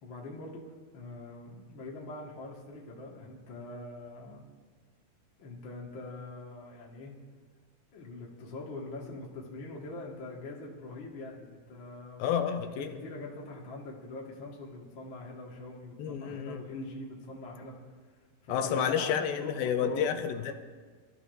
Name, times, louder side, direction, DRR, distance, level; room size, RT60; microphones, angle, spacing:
voice 1, 0.0-4.5 5.4-7.1 7.9-12.2 12.6-17.7 18.4-20.1, left 2 dB, 45° left, -3 dB, 1.7 m, -43 dB
voice 2, 12.2-12.9 16.0-16.6 18.5-20.5, left 8 dB, 75° left, 7 dB, 2.4 m, -30 dB
26.5 x 14.0 x 2.7 m, 1.5 s
omnidirectional pair, 4.6 m